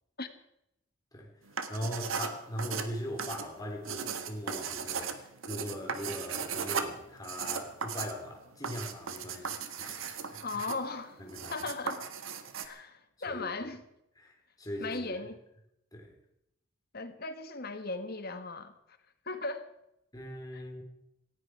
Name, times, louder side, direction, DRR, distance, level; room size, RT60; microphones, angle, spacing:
sound 1, 1.5-12.7, right 6 dB, 85° right, 1.6 m, -37 dB
voice 1, 1.7-10.4 11.2-11.5 12.6-12.8 13.3-13.5 14.2-14.3 14.6-15.2 15.9-16.1 20.1-20.8, equal, 20° left, 1 dB, 3.5 m, -40 dB
voice 2, 10.4-11.2 11.5-12.0 12.6-13.8 14.8-15.4 16.9-18.7 19.3-19.7 20.5-20.6, left 3 dB, 50° left, 9 dB, 1.7 m, -37 dB
18.5 x 16.0 x 4.8 m, 0.80 s
head